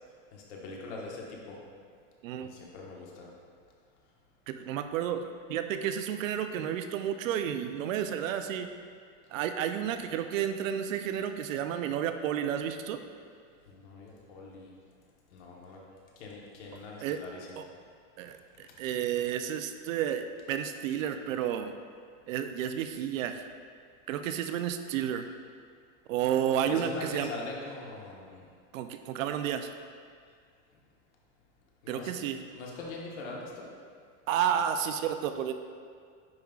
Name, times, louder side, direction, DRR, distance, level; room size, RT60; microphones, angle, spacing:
voice 1, 0.3-1.6 2.4-3.3 13.7-14.7 15.3-15.8 16.2-17.6 26.6-28.5 31.8-32.2 32.5-33.7, left 3 dB, 60° left, -2 dB, 1.3 m, -42 dB
voice 2, 4.5-5.2 5.5-8.7 9.3-13.0 17.0-17.2 17.6-17.7 18.2-21.7 22.3-23.5 24.1-25.3 26.1-27.3 28.7-29.7 31.9-32.4 34.3-35.5, right 9 dB, 90° right, 8 dB, 0.6 m, -31 dB
9.6 x 5.2 x 2.4 m, 2.1 s
supercardioid pair, 175°, 38 cm